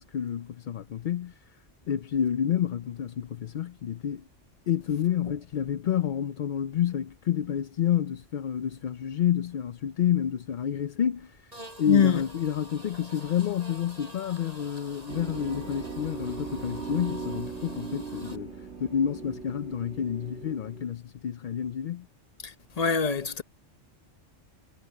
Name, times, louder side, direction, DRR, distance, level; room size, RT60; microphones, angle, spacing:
voice 1, 0.0-1.6 1.9-4.2 4.7-22.1, left 9 dB, 55° left, 0.6 m, -29 dB
Buzz, 11.5-18.4, right 1 dB, 30° right, 5.7 m, -47 dB
voice 2, 11.9-12.2 22.4-23.4, left 6 dB, 35° left, 0.9 m, -24 dB
sound 1, 15.1-20.8, right 5 dB, 65° right, 3.1 m, -39 dB
omnidirectional pair, 1.3 m